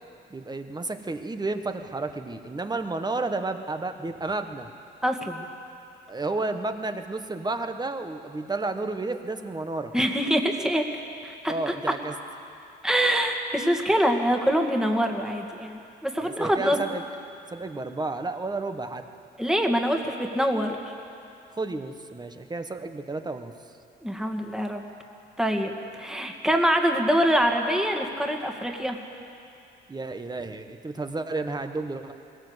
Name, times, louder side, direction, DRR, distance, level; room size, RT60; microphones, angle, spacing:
voice 1, 0.3-4.7 6.1-9.9 11.5-12.1 16.2-17.0 17.5-19.0 21.6-23.5 29.9-32.1, right 3 dB, 20° right, 7 dB, 1.4 m, -31 dB
voice 2, 5.0-5.5 9.9-10.8 11.2-11.5 12.8-16.8 19.4-20.8 24.0-24.8 25.4-25.7 26.0-29.0, equal, 5° right, 2 dB, 2.0 m, -24 dB
21.0 x 17.5 x 8.1 m, 2.6 s
cardioid pair, 90°, 20 cm